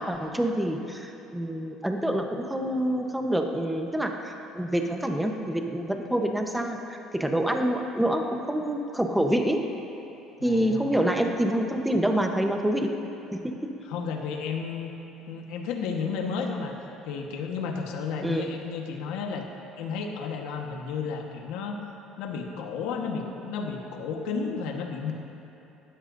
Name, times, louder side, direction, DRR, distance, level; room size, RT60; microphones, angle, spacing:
voice 1, 0.0-9.6 10.4-12.9 13.3-13.4 18.2-18.5, right 1 dB, 5° right, 3 dB, 1.0 m, -27 dB
voice 2, 10.4-10.9 13.9-14.9 15.3-16.7 17.0-19.4 19.8-21.8 22.2-25.1, left 5 dB, 80° left, 2 dB, 1.3 m, -32 dB
18.0 x 13.0 x 2.7 m, 2.9 s
cardioid pair, 120°, 0 cm